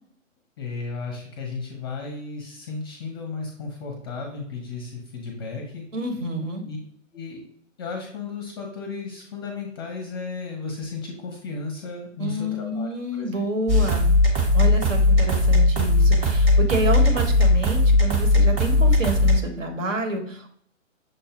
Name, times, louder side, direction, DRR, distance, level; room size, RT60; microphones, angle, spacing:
voice 1, 0.6-5.8 6.6-6.8 7.1-7.4 7.8-13.3, left 4 dB, 20° left, 2 dB, 0.5 m, -34 dB
voice 2, 5.9-6.6 12.2-14.1 14.5-20.5, right 1 dB, 70° right, 4 dB, 1.2 m, -29 dB
sound 1, 13.7-19.4, left 2 dB, 15° right, 0.9 m, -18 dB
6.3 x 2.2 x 2.8 m, 0.63 s
figure-of-eight pair, 140°, 39 cm